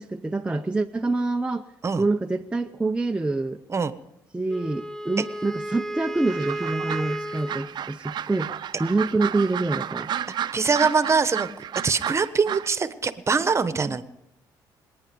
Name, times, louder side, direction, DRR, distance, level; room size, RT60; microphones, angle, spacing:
voice 1, 0.0-1.7 2.0-3.6 4.3-8.5 8.8-10.1 13.9-14.0, right 2 dB, 10° right, 4 dB, 0.7 m, -26 dB
Wind instrument woodwind instrument, 4.5-7.7, right 1 dB, 5° left, 1.0 m, -33 dB
sound 1, 6.3-12.7, right 9 dB, 60° right, 0.7 m, -32 dB
voice 2, 10.5-14.0, right 5 dB, 35° right, 12 dB, 1.2 m, -23 dB
27.0 x 9.7 x 5.3 m, 0.84 s
cardioid pair, 80°, 8 cm